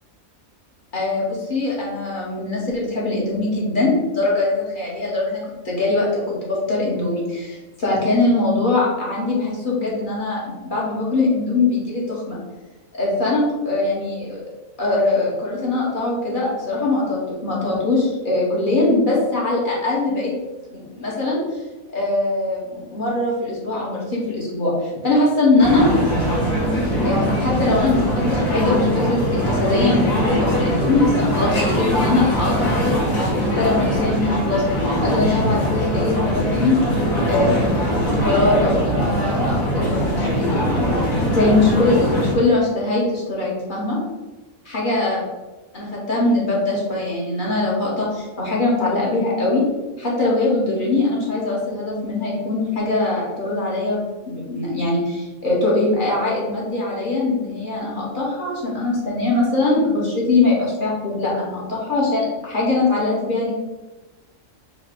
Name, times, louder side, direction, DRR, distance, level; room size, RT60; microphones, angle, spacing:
voice 1, 0.9-12.4 12.9-14.4 14.8-20.3 20.7-21.6 21.9-25.9 27.0-34.6 35.0-36.8 37.3-40.9 41.3-44.0 44.7-45.2 45.7-49.6 50.0-54.0 54.3-63.5, left 2 dB, 40° left, -5 dB, 1.2 m, -22 dB
sound 1, 25.6-42.3, equal, 80° left, 1.7 m, -21 dB
4.1 x 2.2 x 4.4 m, 1.1 s
omnidirectional pair, 1.4 m